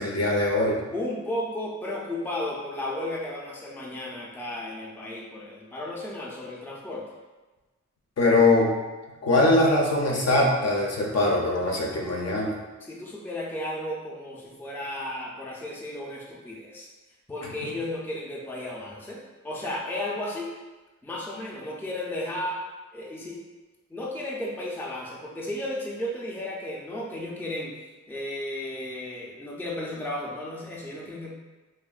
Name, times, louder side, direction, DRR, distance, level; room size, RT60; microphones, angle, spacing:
voice 1, 0.0-0.8 8.2-8.7 9.2-12.5, left 2 dB, 60° left, -1 dB, 0.5 m, -22 dB
voice 2, 0.9-7.0 12.8-16.9 17.3-19.2 19.4-20.5 21.0-22.6 22.9-23.4 23.9-27.7 28.1-31.3, left 1 dB, 5° left, -3 dB, 0.4 m, -34 dB
3.1 x 2.1 x 2.3 m, 1.2 s
wide cardioid pair, 80°, 29 cm